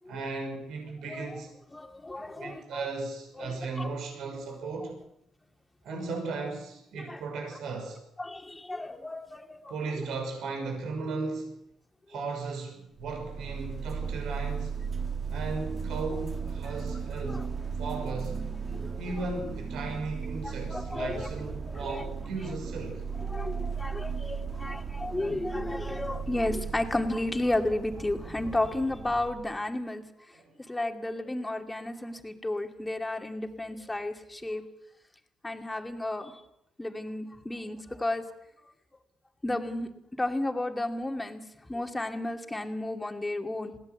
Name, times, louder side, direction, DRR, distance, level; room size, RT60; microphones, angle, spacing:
voice 1, 0.1-1.5 2.2-5.0 5.8-8.0 9.7-11.7 12.1-14.8 15.3-18.4 19.0-23.0 30.3-30.6, right 3 dB, 80° right, 5.9 m, -36 dB
voice 2, 1.7-2.9 3.4-3.9 7.1-7.2 8.2-9.7 16.8-17.4 18.7-19.0 20.4-21.3 21.7-22.0 23.3-30.0 30.7-34.6 35.4-36.4 36.8-38.3 39.4-39.9 40.2-41.4 41.7-43.8, left 2 dB, 15° left, 2.5 m, -33 dB
sound 1, 13.0-29.6, right 6 dB, 35° right, 2.3 m, -36 dB
21.5 x 17.0 x 8.1 m
cardioid pair, 90°, 0 cm